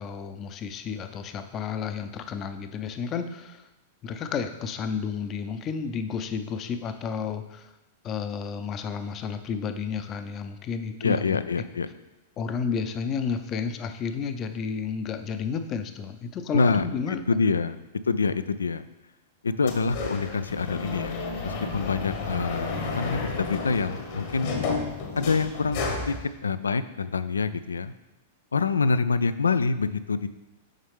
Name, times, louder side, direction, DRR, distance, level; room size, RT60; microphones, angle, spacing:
voice 1, 0.0-3.6 4.0-7.7 8.0-11.4 12.4-17.2, left 6 dB, 35° left, 9 dB, 0.6 m, -31 dB
voice 2, 11.0-11.9 16.5-18.8 19.4-24.5 25.2-26.1 26.4-27.9 28.5-30.3, left 4 dB, 85° left, 13 dB, 0.3 m, -26 dB
sound 1, 19.7-26.2, left 3 dB, 55° left, 1.2 m, -32 dB
7.2 x 5.4 x 3.5 m, 1.0 s
hypercardioid pair, 100°, 0 cm